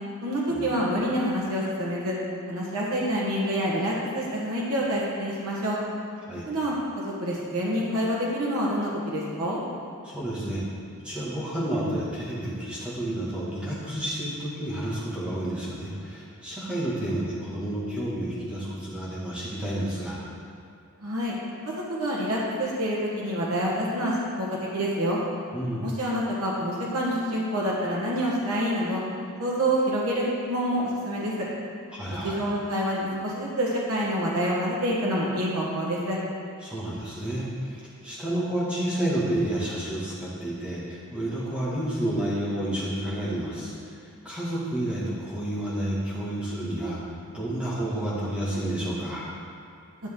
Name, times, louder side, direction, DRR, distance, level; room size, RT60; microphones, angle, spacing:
voice 1, 0.2-2.2 2.5-5.8 6.4-9.6 21.0-21.4 21.9-25.2 25.8-29.0 29.4-31.3 32.2-36.2, equal, 85° right, -5 dB, 1.4 m, -27 dB
voice 2, 10.0-10.6 11.0-20.2 25.5-25.9 31.9-32.4 36.6-47.0 47.3-49.2, right 1 dB, 5° right, -8 dB, 1.9 m, -30 dB
10.5 x 6.1 x 3.8 m, 2.5 s
head